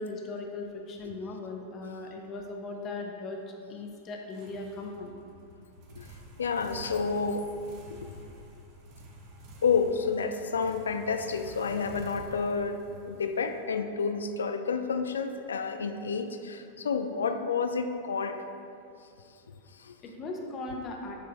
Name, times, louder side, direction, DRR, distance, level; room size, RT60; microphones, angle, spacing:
voice 1, 0.0-3.4 3.7-5.1 20.0-21.2, left 3 dB, 30° left, 1 dB, 0.8 m, -38 dB
sound 1, 4.3-14.1, right 2 dB, 40° right, 0.8 m, -49 dB
voice 2, 6.4-7.5 7.9-8.1 9.6-18.4 19.8-20.0, left 5 dB, 70° left, 8 dB, 0.3 m, -30 dB
8.1 x 3.8 x 3.5 m, 2.6 s
figure-of-eight pair, 90°, 0 cm